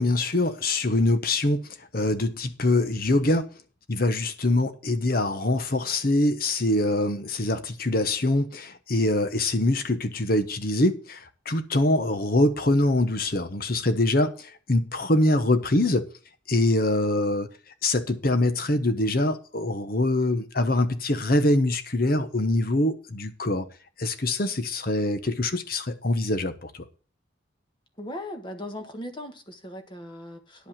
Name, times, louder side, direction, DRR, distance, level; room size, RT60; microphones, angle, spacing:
voice 1, 0.0-1.7 1.9-3.5 3.9-16.0 16.5-17.5 17.8-23.7 24.0-26.8, left 1 dB, 50° left, 1.1 m, -24 dB
voice 2, 28.0-30.7, left 1 dB, 25° left, 1.4 m, -38 dB
10.5 x 5.3 x 7.4 m
head